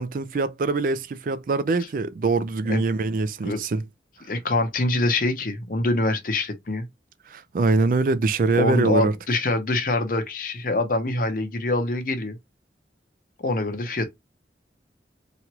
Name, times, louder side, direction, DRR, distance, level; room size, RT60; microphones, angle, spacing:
voice 1, 0.0-3.8 7.3-9.1, right 3 dB, 50° right, 0.3 m, -23 dB
voice 2, 4.3-6.9 8.5-12.4 13.4-14.0, left 2 dB, 50° left, 0.6 m, -24 dB
3.0 x 2.4 x 2.9 m
head